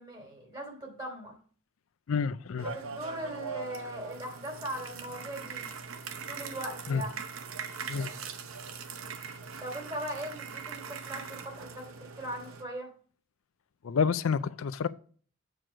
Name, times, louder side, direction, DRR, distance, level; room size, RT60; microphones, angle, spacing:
voice 1, 0.0-1.3 2.6-5.7 6.3-7.1 9.6-12.9, right 1 dB, 20° right, 2.9 m, -39 dB
voice 2, 2.1-2.7 6.9-7.0 7.9-8.1 13.8-14.9, left 6 dB, 85° left, 0.4 m, -29 dB
sound 1, 2.6-12.6, right 5 dB, 90° right, 0.8 m, -41 dB
7.6 x 4.7 x 5.0 m
head